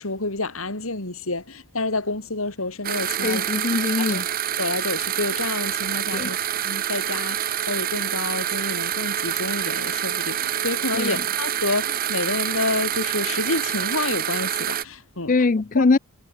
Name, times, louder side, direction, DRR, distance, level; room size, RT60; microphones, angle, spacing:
voice 1, 0.0-3.4 4.0-4.2 4.6-6.4 6.6-15.3 15.8-15.9, left 2 dB, 90° left, 4.6 m, -29 dB
sound 1, 2.8-14.8, right 10 dB, 45° right, 0.7 m, -26 dB
voice 2, 3.2-4.2 6.1-6.3 10.9-11.2 15.3-16.0, left 3 dB, 40° left, 0.5 m, -21 dB
head